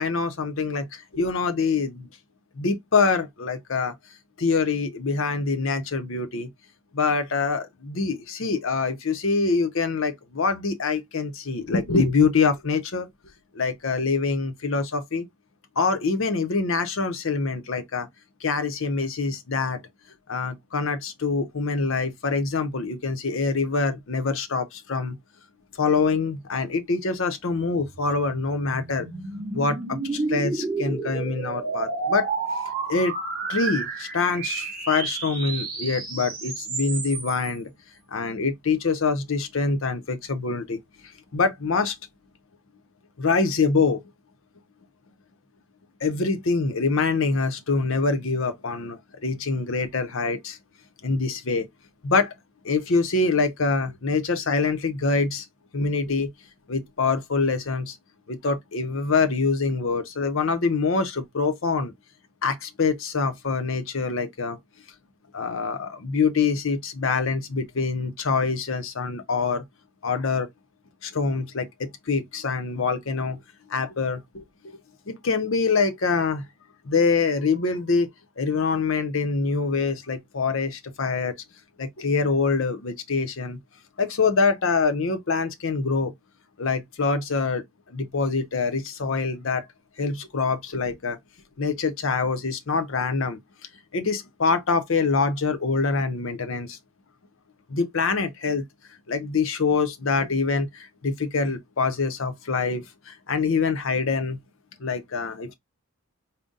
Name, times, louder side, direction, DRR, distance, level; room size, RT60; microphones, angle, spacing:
voice 1, 0.0-2.1 2.6-3.9 4.4-6.5 6.9-13.1 13.5-15.3 15.8-18.1 18.4-19.8 20.3-25.2 25.8-29.1 29.5-32.3 32.9-33.1 33.5-37.7 38.1-41.9 43.2-44.0 46.0-50.6 51.0-51.7 52.0-52.3 52.6-55.4 55.7-56.3 56.7-58.0 58.3-61.9 62.4-64.6 65.3-69.6 70.0-70.5 71.0-73.4 73.7-74.8 75.1-76.4 76.8-78.1 78.4-81.3 81.8-83.6 84.0-86.1 86.6-87.6 87.9-89.7 90.0-91.2 91.6-93.4 93.9-96.8 97.7-98.6 99.1-104.4 104.8-105.5, left 4 dB, 60° left, 0.7 m, -25 dB
sound 1, 27.8-37.5, right 4 dB, 40° right, 1.4 m, -31 dB
3.9 x 2.1 x 3.7 m
head